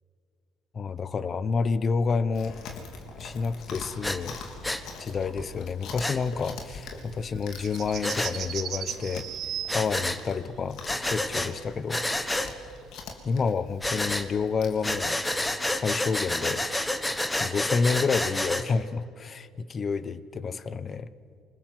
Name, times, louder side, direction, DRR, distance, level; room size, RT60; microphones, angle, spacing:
voice 1, 0.7-2.6 3.2-4.4 5.0-9.3 9.7-12.7 13.2-15.2 15.7-16.6 17.4-21.1, left 5 dB, 25° left, 15 dB, 0.9 m, -29 dB
Chewing mastication, 2.3-15.4, left 4 dB, 55° left, 3.8 m, -44 dB
Breathing, 4.0-4.2 4.6-4.8 6.0-6.2 8.0-8.3 9.7-10.2 10.8-11.5 11.9-12.5 13.8-14.3 14.8-18.6, left 1 dB, 5° left, 1.3 m, -29 dB
sound 1, 7.1-9.8 11.8-11.9 12.8-12.9, right 10 dB, 45° right, 1.7 m, -35 dB
28.0 x 25.5 x 7.7 m, 2.4 s
cardioid pair, 165°, 0 cm